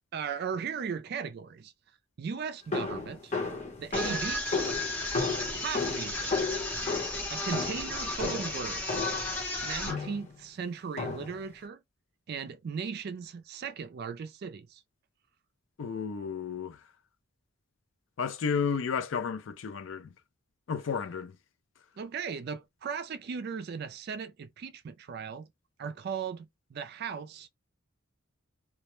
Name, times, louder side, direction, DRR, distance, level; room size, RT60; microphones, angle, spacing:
voice 1, 0.1-1.7 2.2-3.3 3.8-4.8 5.6-6.3 7.3-9.1 9.6-11.8 12.3-14.8 22.0-25.5 25.8-27.5, right 6 dB, 50° right, 0.3 m, -37 dB
sound 1, 2.7-9.4 9.9-10.3 11.0-11.5, left 4 dB, 35° left, 0.8 m, -34 dB
sound 2, 3.9-10.0, left 2 dB, 10° left, 0.6 m, -34 dB
voice 2, 15.8-16.8 18.2-20.1 20.7-21.3, left 6 dB, 65° left, 0.4 m, -32 dB
2.3 x 2.1 x 2.9 m
head